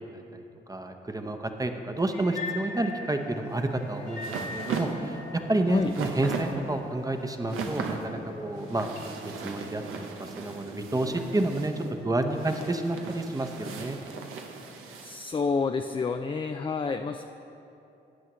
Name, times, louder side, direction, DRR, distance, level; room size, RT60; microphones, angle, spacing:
voice 1, 0.1-5.2 5.5-8.9 9.2-14.0, right 2 dB, 15° right, 6 dB, 0.8 m, -30 dB
sound 1, 2.1-9.0, left 2 dB, 85° left, 1.9 m, -41 dB
sound 2, 3.5-15.2, right 5 dB, 90° right, 0.8 m, -38 dB
voice 2, 15.0-17.2, left 4 dB, 25° left, 6 dB, 0.4 m, -29 dB
12.5 x 8.5 x 3.1 m, 2.8 s
supercardioid pair, 50°, 21 cm